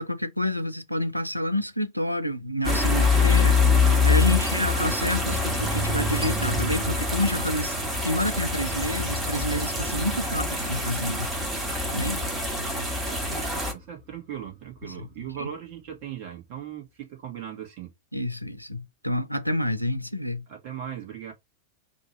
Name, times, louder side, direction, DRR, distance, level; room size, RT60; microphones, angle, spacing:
voice 1, 0.0-3.6 4.0-7.8 8.0-11.3 11.9-12.2 14.8-14.9 15.4-15.5 18.1-20.4, left 1 dB, 90° left, 0.4 m, -28 dB
sound 1, 2.6-13.7, left 3 dB, 15° right, 1.3 m, -25 dB
sound 2, 4.7-13.8 14.1-14.2, right 1 dB, 5° left, 1.3 m, -37 dB
voice 2, 13.1-17.9 20.5-21.3, right 10 dB, 45° right, 1.5 m, -38 dB
2.7 x 2.6 x 4.3 m
figure-of-eight pair, 90°, 0 cm